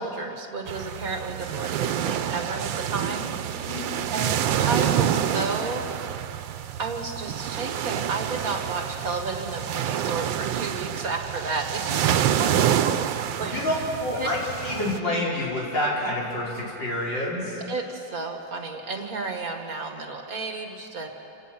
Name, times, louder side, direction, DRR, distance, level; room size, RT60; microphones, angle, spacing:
voice 1, 0.0-3.3 4.1-5.9 6.8-13.1 13.4-13.9 14.1-14.3 17.7-21.1, right 3 dB, 50° right, 4 dB, 1.9 m, -32 dB
sound 1, 0.7-15.0, right 10 dB, 90° right, 1.5 m, -27 dB
voice 2, 13.5-17.6, left 1 dB, 75° left, -5 dB, 5.3 m, -28 dB
28.0 x 18.0 x 5.9 m, 2.7 s
omnidirectional pair, 2.0 m